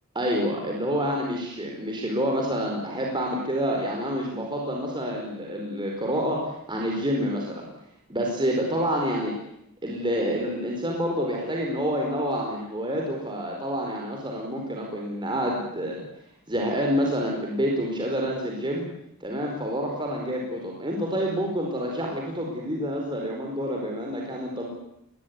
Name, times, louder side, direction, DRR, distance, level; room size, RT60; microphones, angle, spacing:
voice 1, 0.1-7.6 8.1-9.3 9.8-16.0 16.5-18.8 19.2-24.7, equal, 20° right, 0 dB, 4.7 m, -28 dB
22.0 x 20.5 x 9.6 m, 0.79 s
head